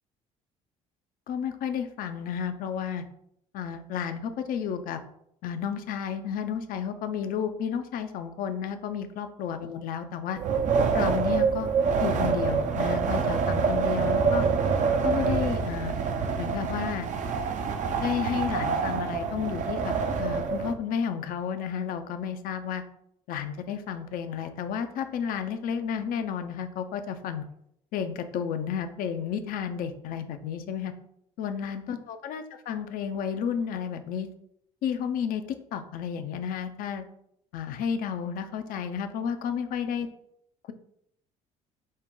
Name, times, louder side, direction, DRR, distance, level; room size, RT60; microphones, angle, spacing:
voice 1, 1.3-3.0 3.5-5.0 5.4-10.4 10.9-11.7 12.0-14.5 15.0-16.0 16.4-17.1 18.0-19.9 20.2-22.8 23.3-27.4 27.9-30.9 31.4-34.3 34.8-37.1 37.5-40.1, left 7 dB, 60° left, 9 dB, 0.6 m, -32 dB
Wind, 10.4-20.7, right 5 dB, 50° right, 0.6 m, -26 dB
5.3 x 2.2 x 3.7 m, 0.72 s
hypercardioid pair, 60°, 16 cm